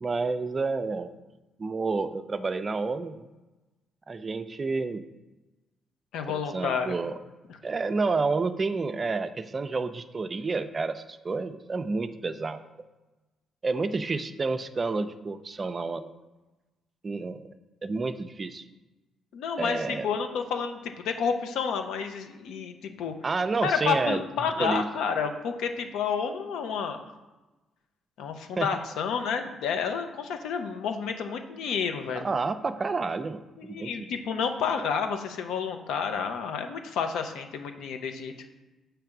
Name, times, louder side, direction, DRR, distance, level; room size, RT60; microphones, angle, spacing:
voice 1, 0.0-1.1 1.6-3.3 4.1-5.0 6.3-7.2 7.6-12.9 13.6-16.1 17.0-17.5 17.8-18.6 19.6-20.1 23.2-24.2 24.6-24.9 28.6-28.7 32.2-34.1, right 3 dB, 35° right, 11 dB, 0.4 m, -30 dB
voice 2, 6.1-6.9 19.3-23.2 23.6-27.0 28.2-32.3 33.6-38.3, left 6 dB, 85° left, 6 dB, 0.7 m, -30 dB
7.5 x 3.3 x 5.9 m, 1.1 s
cardioid pair, 90°, 0 cm